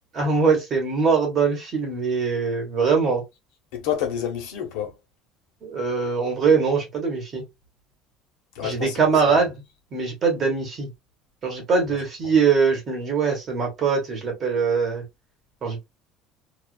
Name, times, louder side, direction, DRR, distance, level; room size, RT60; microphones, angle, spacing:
voice 1, 0.1-3.2 5.6-7.4 8.6-9.6 9.9-10.9 11.4-15.0 15.6-15.8, right 5 dB, 25° right, 1.0 m, -22 dB
voice 2, 3.7-4.9 8.5-9.4, left 9 dB, 70° left, 0.9 m, -29 dB
2.4 x 2.3 x 2.3 m
cardioid pair, 175°, 0 cm